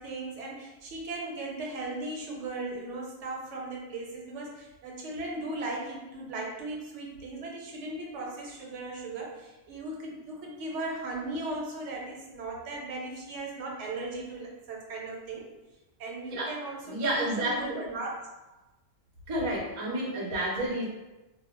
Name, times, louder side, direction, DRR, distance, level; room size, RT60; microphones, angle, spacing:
voice 1, 0.0-15.5 16.0-18.2, right 2 dB, 75° right, -1 dB, 0.9 m, -37 dB
voice 2, 16.9-17.8 19.3-20.8, right 1 dB, 35° right, -4 dB, 0.5 m, -30 dB
2.1 x 2.0 x 3.6 m, 1.0 s
omnidirectional pair, 1.2 m